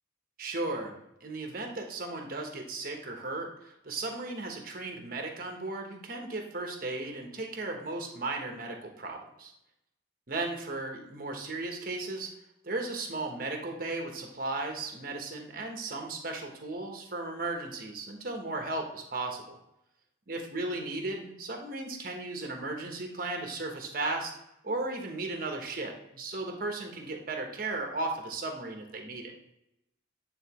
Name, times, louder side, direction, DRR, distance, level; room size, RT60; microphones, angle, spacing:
voice 1, 0.4-9.5 10.3-12.3 12.6-19.6 20.3-24.3 24.6-29.3, right 2 dB, 50° right, 3 dB, 1.1 m, -36 dB
8.9 x 3.8 x 3.0 m, 0.85 s
head